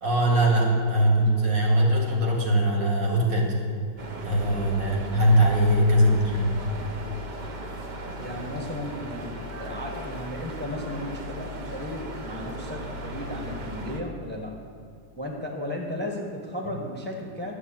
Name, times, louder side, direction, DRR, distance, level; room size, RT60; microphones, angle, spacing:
voice 1, 0.0-3.6 4.2-6.6, right 1 dB, 75° right, -1 dB, 3.1 m, -21 dB
sound 1, 4.0-14.0, equal, 35° right, 0.8 m, -37 dB
voice 2, 8.2-14.5 15.2-17.5, left 1 dB, 5° left, 0 dB, 1.2 m, -35 dB
11.5 x 7.4 x 8.6 m, 2.4 s
omnidirectional pair, 1.9 m